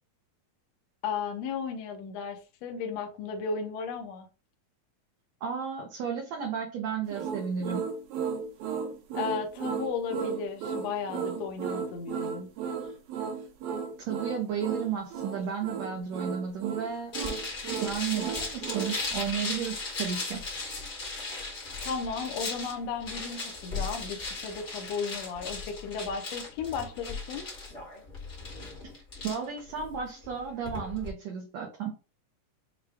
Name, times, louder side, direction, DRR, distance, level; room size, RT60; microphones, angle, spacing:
voice 1, 1.0-4.3 9.1-12.5 21.8-27.5, left 5 dB, 75° left, 4 dB, 1.5 m, -35 dB
voice 2, 5.4-7.9 14.1-17.1 17.8-20.4 29.2-31.9, right 7 dB, 70° right, 0 dB, 1.7 m, -33 dB
sound 1, 7.1-19.0, right 6 dB, 85° right, 2.7 m, -34 dB
sound 2, 17.1-31.1, left 3 dB, 30° left, 1.3 m, -37 dB
6.5 x 2.3 x 3.3 m, 0.33 s
omnidirectional pair, 4.0 m